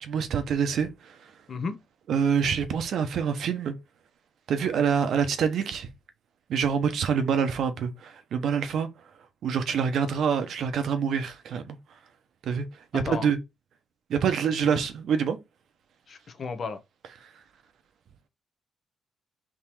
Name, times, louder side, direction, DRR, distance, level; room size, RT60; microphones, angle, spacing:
voice 1, 0.0-1.1 2.1-3.8 4.5-5.9 6.5-8.9 9.4-11.8 12.4-12.7 12.9-13.4 14.1-15.4, right 7 dB, 70° right, 0.8 m, -26 dB
voice 2, 12.9-13.3 16.1-16.8, left 4 dB, 45° left, 0.7 m, -33 dB
3.6 x 3.0 x 4.4 m
cardioid pair, 90°, 0 cm